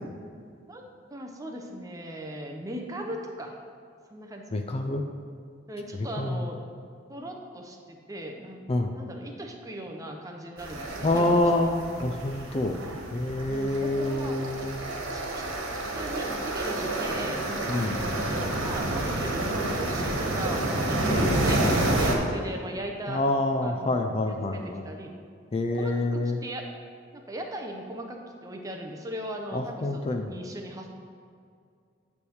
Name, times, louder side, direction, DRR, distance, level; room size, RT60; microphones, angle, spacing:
voice 1, 1.1-3.6 4.1-4.6 5.7-6.6 7.1-8.6 8.9-11.7 13.5-14.4 14.9-17.4 17.7-23.2 23.6-25.1 25.7-26.7 27.1-30.9, right 1 dB, 15° right, 2 dB, 0.7 m, -38 dB
voice 2, 4.5-5.0 6.2-6.4 8.7-8.9 11.0-11.7 12.0-12.8 13.1-14.8 17.7-17.9 23.1-24.8 25.5-26.4 29.5-30.3, left 2 dB, 30° left, 5 dB, 0.4 m, -27 dB
sound 1, 10.6-22.2, right 1 dB, 90° right, 1.3 m, -29 dB
9.7 x 3.4 x 6.3 m, 2.3 s
head